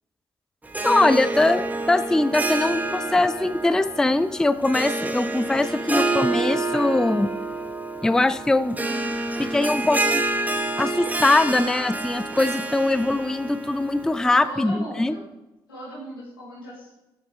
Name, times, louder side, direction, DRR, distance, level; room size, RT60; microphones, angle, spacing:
Harp, 0.6-14.4, right 2 dB, 15° right, 0.7 m, -28 dB
voice 1, 0.8-7.3 8.0-8.8 9.4-10.2 10.8-15.2, left 2 dB, 5° left, 13 dB, 0.3 m, -22 dB
voice 2, 8.6-9.0 14.4-15.3 15.7-16.9, right 1 dB, 85° left, -7 dB, 2.3 m, -37 dB
7.0 x 6.5 x 3.6 m, 0.98 s
figure-of-eight pair, 40°, 12 cm